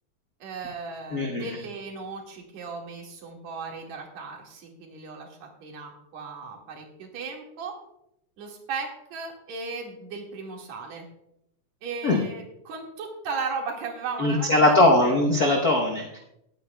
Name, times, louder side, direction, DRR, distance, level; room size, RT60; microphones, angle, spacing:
voice 1, 0.4-7.7 8.4-11.0 11.8-15.1, right 4 dB, 60° right, 0 dB, 3.1 m, -36 dB
voice 2, 1.1-1.5 12.0-12.2 14.2-16.2, left 2 dB, 80° left, 1 dB, 0.8 m, -20 dB
20.0 x 9.1 x 2.3 m, 0.79 s
omnidirectional pair, 3.6 m